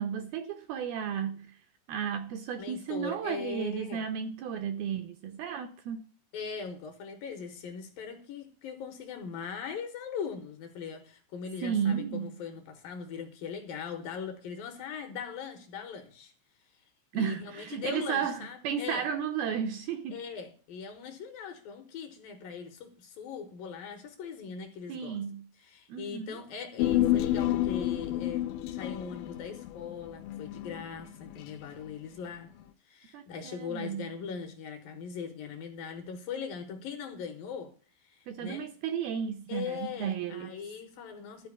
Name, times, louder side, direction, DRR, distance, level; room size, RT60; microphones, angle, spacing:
voice 1, 0.0-1.5 1.9-6.0 11.6-12.3 17.1-20.2 24.9-25.5 25.9-26.4 33.1-34.1 38.3-40.5, right 8 dB, 75° right, 2.3 m, -33 dB
voice 2, 2.6-4.1 6.3-16.3 17.1-19.0 20.1-25.2 25.6-32.6 32.9-37.7 38.0-38.7 39.5-41.5, left 6 dB, 70° left, 2.5 m, -40 dB
Human voice, 26.8-31.4 31.7-31.8, left 13 dB, 85° left, 2.1 m, -29 dB
12.5 x 4.4 x 8.5 m
omnidirectional pair, 5.1 m